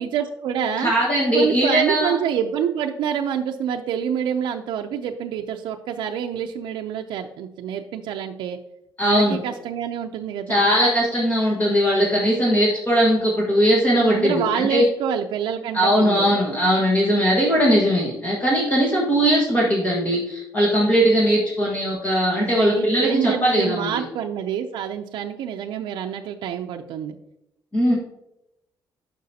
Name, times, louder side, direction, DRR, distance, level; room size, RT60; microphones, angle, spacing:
voice 1, 0.0-0.9 1.3-8.6 9.0-10.6 14.1-16.3 22.4-27.2, right 8 dB, 85° right, 3 dB, 0.5 m, -27 dB
voice 2, 0.8-2.2 9.0-9.4 10.5-14.9 15.7-24.0 27.7-27.9, equal, 20° left, -4 dB, 1.5 m, -19 dB
10.5 x 5.9 x 2.8 m, 0.85 s
cardioid pair, 170°, 8 cm